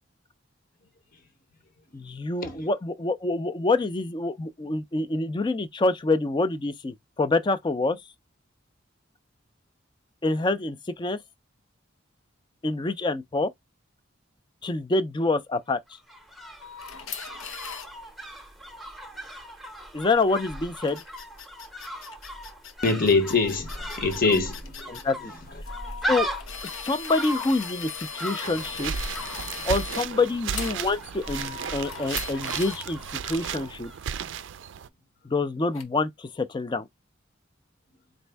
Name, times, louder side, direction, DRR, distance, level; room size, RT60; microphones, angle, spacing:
voice 1, 1.9-8.0 10.2-11.2 12.6-13.5 14.6-15.8 19.9-21.0 24.9-25.3 26.1-26.3 26.8-28.9 29.6-33.9 35.2-36.9, left 3 dB, 25° left, 0.4 m, -26 dB
sound 1, 15.9-34.1 34.3-34.4, equal, ahead, 0.7 m, -38 dB
sound 2, 16.6-17.9 20.8-25.0 25.7-30.1 30.5-30.8 31.2-32.8 35.7-35.8, left 6 dB, 90° left, 0.7 m, -39 dB
voice 2, 22.8-25.0, left 3 dB, 45° left, 0.9 m, -24 dB
sound 3, 28.4-34.9, right 8 dB, 65° right, 0.4 m, -34 dB
4.2 x 2.6 x 3.3 m
head